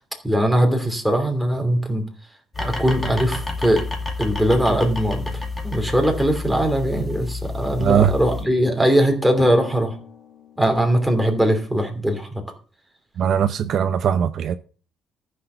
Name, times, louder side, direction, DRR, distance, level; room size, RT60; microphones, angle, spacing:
voice 1, 0.2-2.0 2.6-3.8 4.2-10.0 10.6-12.3, right 1 dB, ahead, 2.8 m, -20 dB
sound 1, 2.5-8.4, left 3 dB, 15° left, 2.3 m, -29 dB
voice 2, 7.8-8.1 13.2-14.6, right 8 dB, 50° right, 0.6 m, -19 dB
Drum, 9.4-11.2, left 7 dB, 65° left, 2.0 m, -37 dB
14.0 x 6.6 x 6.8 m
cardioid pair, 155°, 0 cm